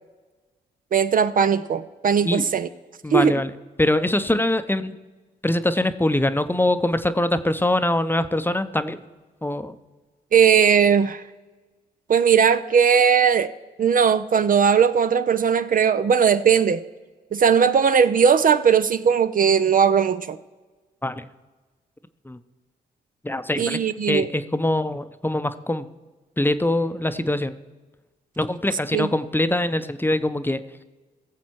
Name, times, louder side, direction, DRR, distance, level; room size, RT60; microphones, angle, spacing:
voice 1, 0.9-2.7 3.1-3.4 10.3-11.2 12.1-13.5 13.8-16.8 17.3-20.4 23.6-24.3 28.9-29.1, right 7 dB, 50° right, 12 dB, 0.5 m, -18 dB
voice 2, 3.0-3.5 3.8-4.9 5.4-9.0 9.4-9.7 21.0-21.3 22.3-22.4 23.2-23.8 24.1-25.9 26.4-27.6 28.4-30.6, left 1 dB, 10° left, 11 dB, 0.7 m, -23 dB
16.5 x 7.3 x 4.6 m, 1.3 s
supercardioid pair, 50°, 19 cm